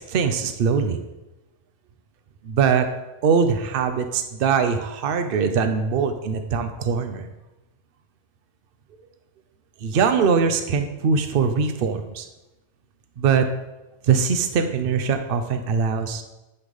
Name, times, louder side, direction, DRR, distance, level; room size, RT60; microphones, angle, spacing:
voice 1, 0.1-1.0 2.4-2.9 3.2-7.3 9.8-12.3 13.2-13.5 14.0-16.2, right 6 dB, 60° right, 8 dB, 0.8 m, -22 dB
9.6 x 3.3 x 5.4 m, 1.0 s
omnidirectional pair, 1.1 m